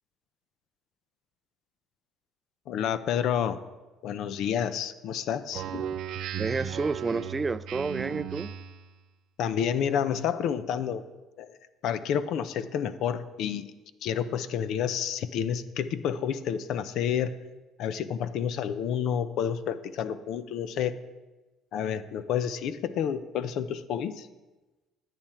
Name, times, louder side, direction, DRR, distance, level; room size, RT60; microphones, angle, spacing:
voice 1, 2.7-3.6 4.0-5.8 9.4-11.0 11.4-11.5 11.8-13.7 14.0-17.4 17.8-21.0 21.7-24.3, left 8 dB, 65° left, 13 dB, 0.6 m, -29 dB
Speech synthesizer, 5.5-8.9, right 9 dB, 65° right, 0.7 m, -36 dB
voice 2, 6.4-8.5, right 4 dB, 25° right, 17 dB, 0.4 m, -30 dB
11.0 x 9.1 x 4.3 m, 1.1 s
supercardioid pair, 90°, 0 cm